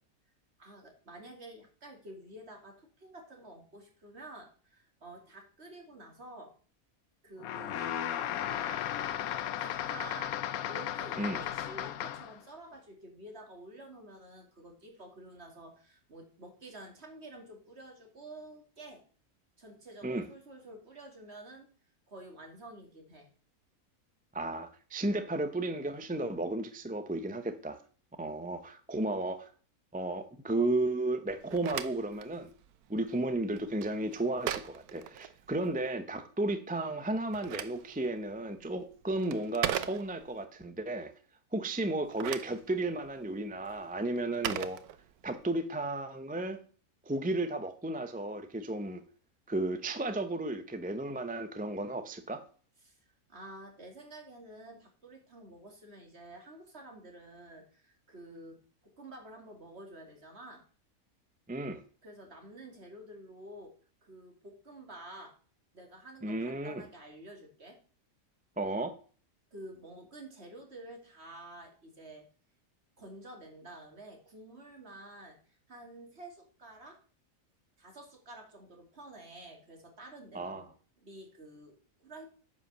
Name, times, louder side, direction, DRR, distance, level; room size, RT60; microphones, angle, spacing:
voice 1, 0.6-6.5 7.2-9.1 9.6-10.4 10.7-19.0 19.6-21.7 22.1-23.3 52.8-53.0 53.3-60.6 62.0-63.8 64.0-65.3 65.7-67.8 69.5-72.3 73.0-77.0 77.8-82.3, right 1 dB, 45° right, 2.7 m, -50 dB
sound 1, 7.4-12.4, left 10 dB, 75° left, 1.1 m, -35 dB
voice 2, 24.3-27.8 28.2-29.5 29.9-32.5 32.9-41.1 41.5-44.8 45.2-46.6 47.1-49.0 49.5-52.4 61.5-61.8 66.2-66.8 68.6-69.0 80.3-80.6, right 2 dB, 10° right, 0.5 m, -33 dB
Telephone, 31.3-35.8 37.0-40.5 41.9-45.5, right 11 dB, 85° right, 1.2 m, -40 dB
9.4 x 5.7 x 6.7 m
omnidirectional pair, 1.5 m